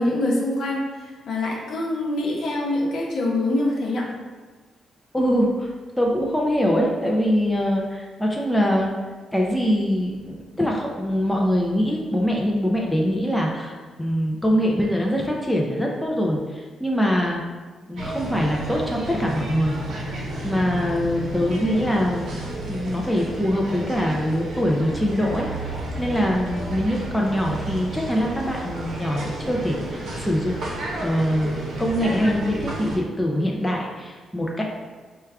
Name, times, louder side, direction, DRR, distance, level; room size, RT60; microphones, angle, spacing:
voice 1, 0.0-4.0, left 1 dB, 65° left, -3 dB, 0.8 m, -24 dB
voice 2, 5.1-8.9 9.3-17.4 17.9-19.8 20.4-30.5 31.0-34.6, equal, 5° left, -1 dB, 0.4 m, -23 dB
sound 1, 18.0-33.0, right 1 dB, 65° right, 0.8 m, -32 dB
4.5 x 2.3 x 3.4 m, 1.4 s
cardioid pair, 140°, 0 cm